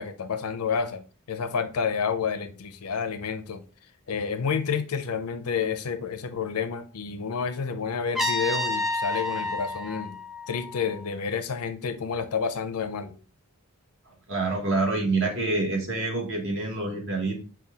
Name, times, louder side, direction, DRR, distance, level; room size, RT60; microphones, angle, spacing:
voice 1, 0.0-3.6 4.1-10.2 10.5-13.2, left 6 dB, 80° left, 0.6 m, -29 dB
Trumpet, 8.2-11.1, left 1 dB, ahead, 0.4 m, -30 dB
voice 2, 14.3-17.4, right 3 dB, 60° right, 1.3 m, -26 dB
5.5 x 2.3 x 3.5 m
head